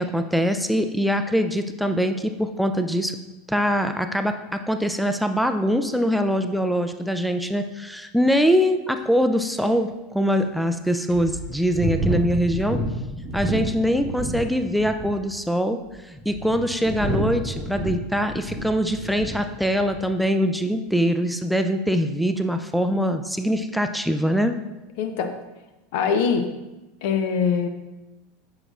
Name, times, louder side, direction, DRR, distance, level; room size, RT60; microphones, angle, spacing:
voice 1, 0.0-3.2 3.5-12.8 13.3-24.6, equal, ahead, 7 dB, 0.4 m, -23 dB
sound 1, 9.0-9.1 9.6-9.7 10.4-10.5 11.1-14.5 14.7-15.2 15.9-19.4 19.7-20.0, right 1 dB, 25° right, 1.0 m, -29 dB
voice 2, 25.0-25.3 25.9-26.5 27.0-27.7, left 6 dB, 60° left, 7 dB, 0.6 m, -22 dB
7.8 x 5.7 x 2.5 m, 1.0 s
figure-of-eight pair, 80°, 0 cm